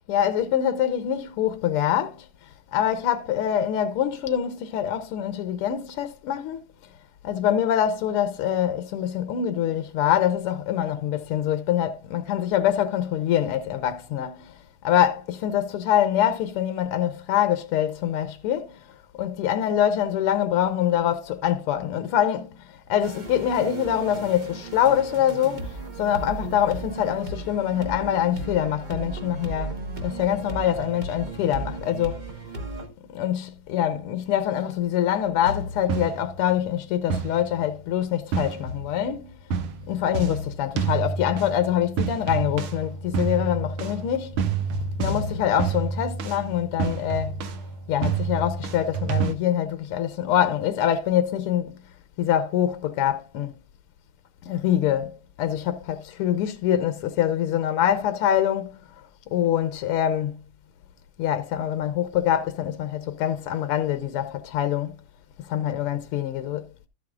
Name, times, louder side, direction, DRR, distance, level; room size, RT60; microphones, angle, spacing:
voice 1, 0.1-2.3 2.7-6.6 7.2-14.5 14.8-18.8 19.2-22.5 22.9-29.8 30.0-32.2 33.1-39.3 39.9-44.4 45.0-47.4 47.9-51.8 52.2-53.5 54.5-58.8 59.3-60.4 61.2-64.9 65.4-66.6, left 10 dB, 85° left, 1.8 m, -24 dB
sound 1, 23.0-32.9, right 3 dB, 30° right, 1.0 m, -36 dB
sound 2, 35.4-36.5 37.1-37.7 38.3-39.1 39.5-49.3, right 5 dB, 75° right, 1.8 m, -29 dB
13.5 x 8.3 x 2.4 m
omnidirectional pair, 2.4 m